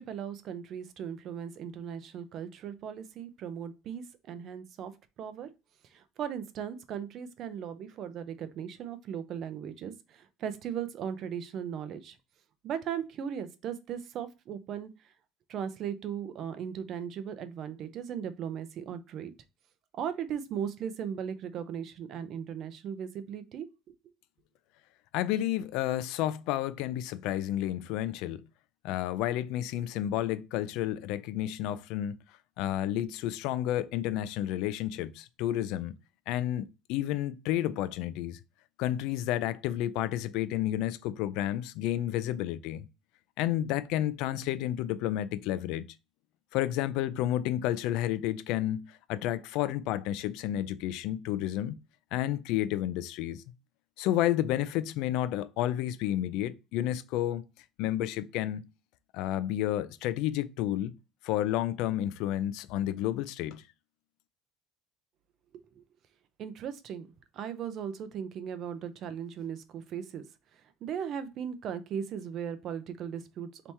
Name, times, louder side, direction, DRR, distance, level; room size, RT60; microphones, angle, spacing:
voice 1, 0.0-4.9 5.2-5.5 5.9-12.2 12.6-14.9 15.5-19.3 19.9-23.7 65.5-65.8 66.4-67.1 67.3-70.2 70.5-73.7, right 8 dB, 40° right, 0.5 m, -37 dB
voice 2, 25.1-28.4 28.8-32.2 32.6-35.9 36.3-38.4 38.8-42.8 43.4-45.9 46.5-51.8 52.1-53.4 54.0-57.4 57.8-58.6 59.1-60.9 61.2-63.6, left 13 dB, 65° left, 0.4 m, -31 dB
3.4 x 2.9 x 4.2 m
cardioid pair, 165°, 0 cm